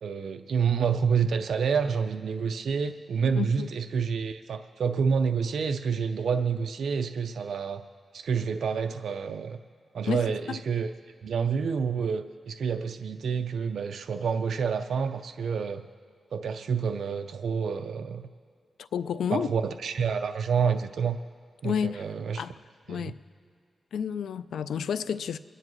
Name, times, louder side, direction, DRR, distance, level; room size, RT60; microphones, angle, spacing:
voice 1, 0.0-7.8 8.1-9.6 9.9-10.9 11.2-15.8 16.3-18.2 19.3-21.2 21.6-22.4 22.9-23.1, right 6 dB, 75° right, 7 dB, 0.4 m, -28 dB
voice 2, 3.4-3.7 10.1-10.6 18.8-19.5 21.6-22.0 22.4-22.5 22.9-23.2 23.9-25.4, left 7 dB, 90° left, 14 dB, 0.4 m, -30 dB
24.5 x 9.8 x 3.1 m, 2.2 s
cardioid pair, 80°, 0 cm